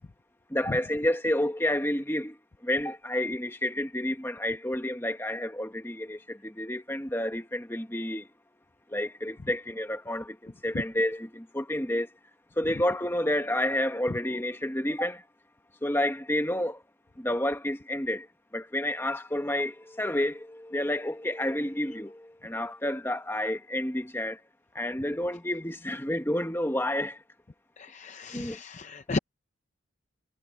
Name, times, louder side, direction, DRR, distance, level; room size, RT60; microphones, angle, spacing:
voice 1, 0.5-2.4 2.6-8.3 8.9-12.1 12.6-15.2 15.8-16.8 17.2-18.3 18.5-24.4 24.7-27.2 28.3-28.6, left 1 dB, 10° left, 1.4 m, -30 dB
voice 2, 27.8-29.2, left 3 dB, 35° left, 0.6 m, -34 dB
head